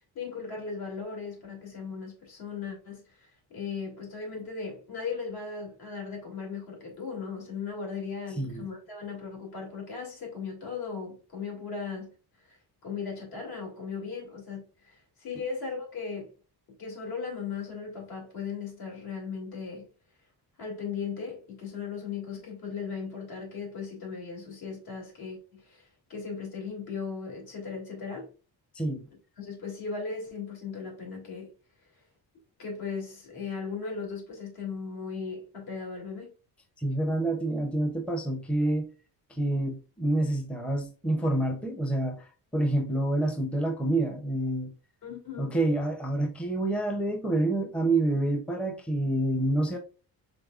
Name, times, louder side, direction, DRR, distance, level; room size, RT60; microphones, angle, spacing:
voice 1, 0.1-12.1 12.4-16.3 16.8-19.9 20.6-28.3 29.4-31.5 32.6-36.3 45.0-45.6, left 5 dB, 75° left, 2.5 m, -37 dB
voice 2, 36.8-38.9 39.3-44.7 45.4-49.8, right 1 dB, 5° left, 0.6 m, -28 dB
5.1 x 3.9 x 2.3 m
cardioid pair, 155°, 38 cm